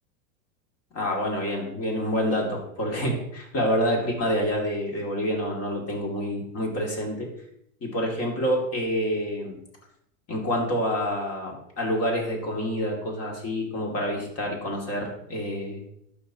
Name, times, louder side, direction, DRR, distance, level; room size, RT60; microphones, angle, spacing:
voice 1, 0.9-7.3 7.8-9.6 10.3-15.8, equal, 35° left, 1 dB, 2.7 m, -27 dB
12.0 x 5.7 x 3.0 m, 0.70 s
hypercardioid pair, 105°, 43 cm